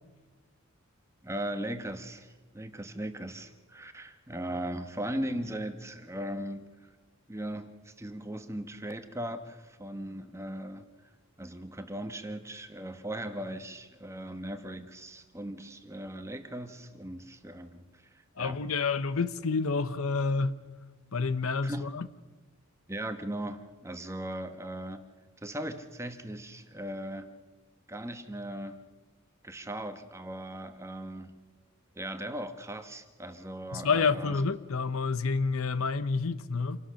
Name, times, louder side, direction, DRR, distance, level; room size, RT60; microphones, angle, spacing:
voice 1, 1.2-6.9 7.3-11.1 11.4-18.6 21.6-21.9 22.9-25.0 25.4-27.3 27.9-28.8 29.4-31.3 32.0-34.4, right 1 dB, 10° right, 1.1 m, -38 dB
voice 2, 18.4-20.6 21.1-22.1 33.7-36.8, left 4 dB, 70° left, 0.8 m, -29 dB
27.5 x 17.5 x 6.4 m
head